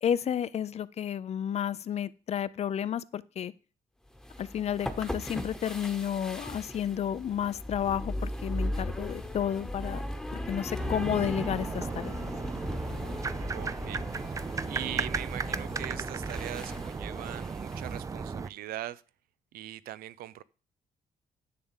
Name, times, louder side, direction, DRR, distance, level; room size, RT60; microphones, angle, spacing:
voice 1, 0.0-3.5 4.4-10.0 10.3-12.2, left 9 dB, 45° left, 0.5 m, -31 dB
sound 1, 4.1-18.0, left 1 dB, 5° left, 1.1 m, -38 dB
sound 2, 10.8-18.5, right 5 dB, 20° right, 0.4 m, -35 dB
voice 2, 13.5-19.0 19.5-20.4, right 13 dB, 90° right, 0.5 m, -41 dB
10.5 x 3.7 x 7.2 m
cardioid pair, 115°, 15 cm